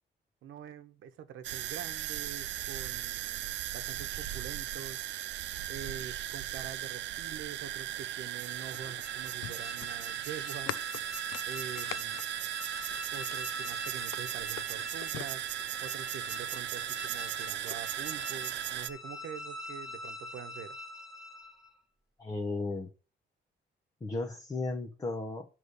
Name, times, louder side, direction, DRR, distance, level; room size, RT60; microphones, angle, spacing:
voice 1, 0.4-5.0 5.7-10.7 11.5-12.3 13.1-15.4 15.8-20.8, right 8 dB, 85° right, 0.9 m, -45 dB
sound 1, 1.4-18.9, right 13 dB, 65° right, 0.4 m, -37 dB
sound 2, 8.3-13.5 14.0-16.1 17.0-17.8, left 14 dB, 85° left, 0.4 m, -44 dB
sound 3, 8.4-21.8, left 2 dB, ahead, 1.0 m, -44 dB
voice 2, 22.2-22.9 24.0-25.4, left 3 dB, 20° left, 0.7 m, -35 dB
9.5 x 3.2 x 6.6 m
cardioid pair, 170°, 20 cm